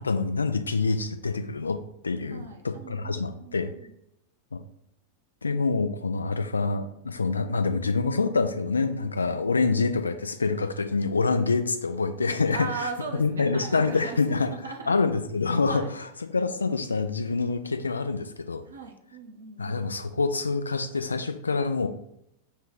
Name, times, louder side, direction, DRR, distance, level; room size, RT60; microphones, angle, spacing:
voice 1, 0.0-1.8 2.0-3.7 4.5-4.6 5.4-12.6 13.2-14.5 14.9-15.8 16.3-18.6 19.6-21.9, left 4 dB, 75° left, 10 dB, 0.3 m, -26 dB
voice 2, 2.3-3.9 12.5-14.9 15.7-15.9 18.6-19.8, right 4 dB, 75° right, 2 dB, 0.7 m, -38 dB
6.7 x 2.3 x 3.0 m, 0.79 s
figure-of-eight pair, 90°, 0 cm